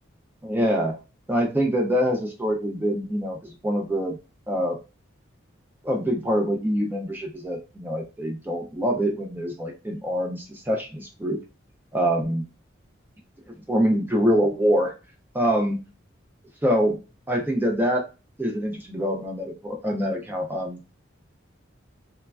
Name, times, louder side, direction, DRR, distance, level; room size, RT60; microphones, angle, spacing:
voice 1, 0.4-1.0 1.3-4.2 4.5-4.8 5.8-11.4 11.9-12.4 13.7-14.9 15.3-15.8 16.6-17.0 17.3-18.0 18.4-20.8, equal, 10° right, 1 dB, 0.4 m, -25 dB
3.1 x 2.2 x 2.2 m, 0.30 s
head